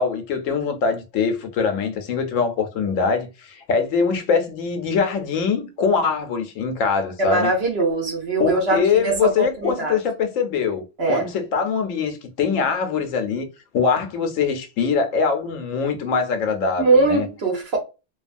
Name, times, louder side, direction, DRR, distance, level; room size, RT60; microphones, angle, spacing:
voice 1, 0.0-7.5 8.4-13.5 13.7-17.3, left 5 dB, 90° left, 1.0 m, -23 dB
voice 2, 7.2-10.0 11.0-11.3 16.8-17.8, right 2 dB, 55° right, 1.1 m, -21 dB
2.8 x 2.3 x 2.5 m
omnidirectional pair, 1.3 m